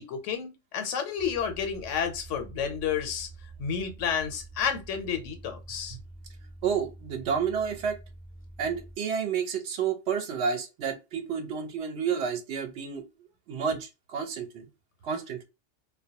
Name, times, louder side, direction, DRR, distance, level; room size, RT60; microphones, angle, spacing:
voice 1, 0.0-3.3 3.6-6.0, left 7 dB, 85° left, 0.9 m, -31 dB
sound 1, 1.2-9.0, right 3 dB, 15° right, 0.8 m, -47 dB
voice 2, 6.6-8.0 8.6-13.0 13.5-14.6 15.0-15.4, right 6 dB, 70° right, 0.8 m, -30 dB
2.2 x 2.1 x 2.7 m
omnidirectional pair, 1.2 m